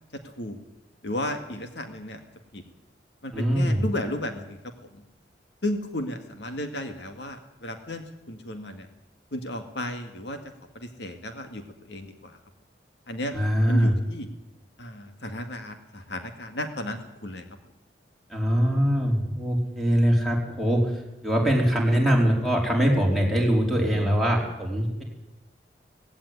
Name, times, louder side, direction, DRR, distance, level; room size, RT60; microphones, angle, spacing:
voice 1, 0.1-0.6 1.0-2.2 2.5-2.6 3.2-5.0 5.6-8.9 9.3-10.4 10.7-12.4 13.1-13.3 13.7-14.3 14.8-17.5, left 1 dB, 70° left, 6 dB, 2.0 m, -34 dB
voice 2, 3.3-3.8 13.3-13.9 18.3-25.0, equal, ahead, 0 dB, 4.4 m, -23 dB
17.5 x 16.5 x 9.6 m, 0.94 s
head